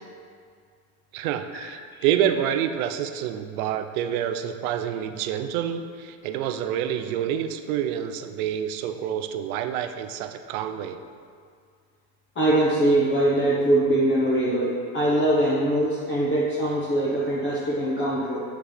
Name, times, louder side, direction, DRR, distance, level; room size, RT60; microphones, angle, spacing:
voice 1, 1.1-11.0, right 9 dB, 85° right, 8 dB, 0.7 m, -27 dB
voice 2, 12.3-18.4, right 1 dB, 30° left, -8 dB, 1.3 m, -22 dB
7.6 x 6.4 x 3.4 m, 2.2 s
supercardioid pair, 135°, 42 cm